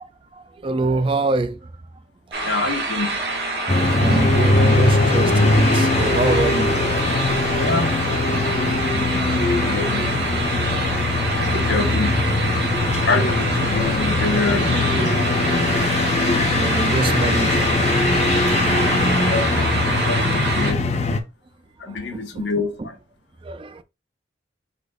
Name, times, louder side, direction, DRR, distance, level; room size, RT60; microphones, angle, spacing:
voice 1, 0.3-1.7 2.3-2.4 3.7-7.7 9.2-9.6 10.4-10.6 10.8-10.9 11.3-11.5 16.5-17.7 18.2-19.0 21.8-22.4 22.8-22.9 23.4-23.8, right 3 dB, 30° right, 0.3 m, -27 dB
sound 1, 2.3-20.7, right 2 dB, 65° right, 1.4 m, -26 dB
voice 2, 2.4-3.2 7.5-7.9 8.3-10.6 11.5-12.2 13.0-15.5 18.7-19.8 20.0-20.8 21.8-23.0, left 3 dB, 80° left, 1.0 m, -27 dB
sound 2, 3.7-21.2, left 2 dB, 35° left, 0.6 m, -21 dB
5.0 x 4.1 x 2.3 m
head